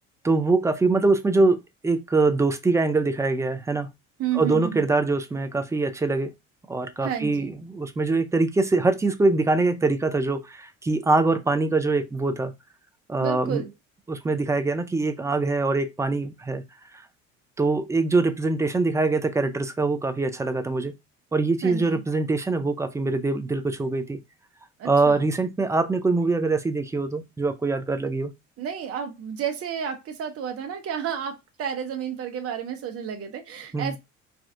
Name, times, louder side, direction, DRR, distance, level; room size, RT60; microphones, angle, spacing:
voice 1, 0.2-3.9 4.3-6.3 6.7-12.5 13.1-13.6 14.1-16.6 17.6-20.9 21.3-24.2 24.8-28.3 33.7-33.9, right 3 dB, 10° right, 0.3 m, -23 dB
voice 2, 4.2-4.8 7.0-7.5 13.2-13.7 21.6-22.0 24.8-25.2 28.6-34.0, right 8 dB, 35° right, 0.7 m, -31 dB
3.3 x 2.3 x 2.6 m
figure-of-eight pair, 55°, 39 cm